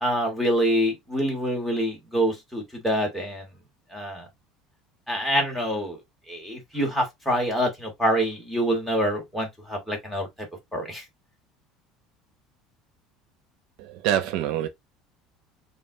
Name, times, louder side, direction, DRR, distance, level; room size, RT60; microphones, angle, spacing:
voice 1, 0.0-3.5 3.9-4.3 5.1-6.0 6.3-10.3 10.7-11.0, equal, ahead, 1.5 m, -26 dB
voice 2, 13.8-14.7, right 11 dB, 65° right, 0.5 m, -25 dB
5.2 x 2.5 x 2.6 m
cardioid pair, 155°, 0 cm